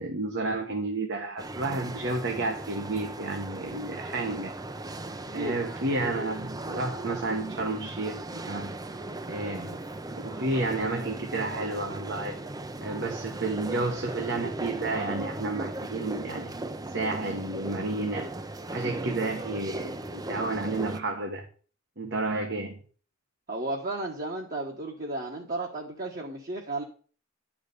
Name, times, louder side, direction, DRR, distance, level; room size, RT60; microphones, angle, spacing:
voice 1, 0.0-4.5 5.3-8.7 9.3-9.8 10.1-12.4 12.8-16.5 16.9-18.3 18.7-21.4 22.0-22.8, right 2 dB, 60° right, 2 dB, 1.3 m, -31 dB
sound 1, 1.4-21.0, right 2 dB, 20° right, 0.6 m, -37 dB
voice 2, 23.5-26.8, right 2 dB, 45° right, -1 dB, 1.4 m, -33 dB
11.0 x 5.0 x 6.8 m, 0.41 s
head